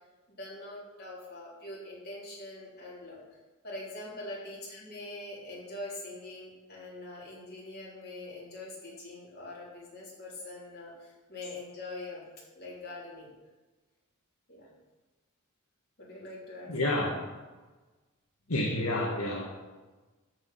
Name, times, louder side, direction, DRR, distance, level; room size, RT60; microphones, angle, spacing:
voice 1, 0.3-3.2 3.6-12.3 12.5-13.3 14.5-14.7 16.0-16.7, left 2 dB, 45° left, -6 dB, 3.5 m, -43 dB
voice 2, 16.7-17.1 18.5-19.4, left 1 dB, 75° left, -4 dB, 1.7 m, -29 dB
13.0 x 4.9 x 5.7 m, 1.2 s
head